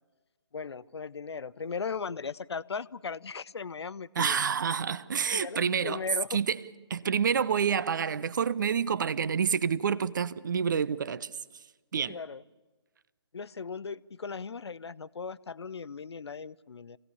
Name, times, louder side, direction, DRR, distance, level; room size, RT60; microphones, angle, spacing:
voice 1, 0.5-4.4 5.3-6.4 12.1-12.4 13.3-17.0, left 5 dB, 65° left, 0.6 m, -37 dB
voice 2, 4.2-6.0 6.3-6.6 6.9-11.3 11.9-12.2, right 7 dB, 45° right, 0.7 m, -28 dB
26.5 x 17.0 x 7.1 m
figure-of-eight pair, 150°, 15 cm